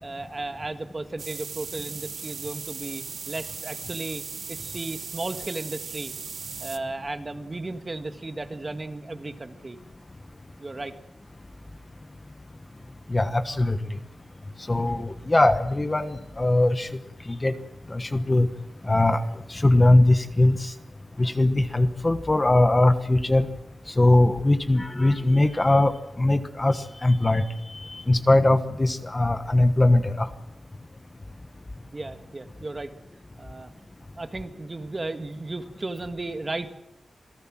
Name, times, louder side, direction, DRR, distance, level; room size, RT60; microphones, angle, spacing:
voice 1, 0.0-4.2 4.5-6.1 6.6-9.8 10.6-10.9 31.9-32.9 33.4-33.7 34.1-36.7, right 2 dB, 30° right, 8 dB, 1.6 m, -35 dB
sound 1, 1.2-6.8, right 5 dB, 90° right, 1.3 m, -37 dB
voice 2, 13.1-13.8 14.7-16.9 17.3-17.5 17.9-18.5 18.9-19.2 19.5-20.7 21.2-23.5 24.0-27.4 27.7-30.3, left 2 dB, 25° left, 9 dB, 1.3 m, -21 dB
27.5 x 17.5 x 7.5 m, 0.85 s
wide cardioid pair, 145°, 0 cm